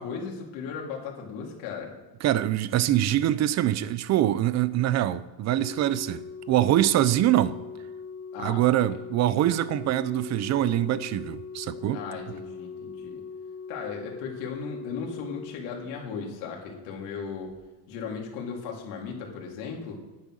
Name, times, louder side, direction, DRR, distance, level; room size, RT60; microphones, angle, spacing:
voice 1, 0.0-1.9 8.3-8.6 11.9-13.2 13.7-17.5 17.9-20.0, left 5 dB, 85° left, 3.6 m, -36 dB
voice 2, 2.2-7.6 8.4-12.0, right 13 dB, 40° right, 0.6 m, -24 dB
Organ, 5.5-16.4 17.5-17.7, left 5 dB, 25° left, 0.7 m, -41 dB
11.0 x 9.0 x 6.4 m
cardioid pair, 150°, 43 cm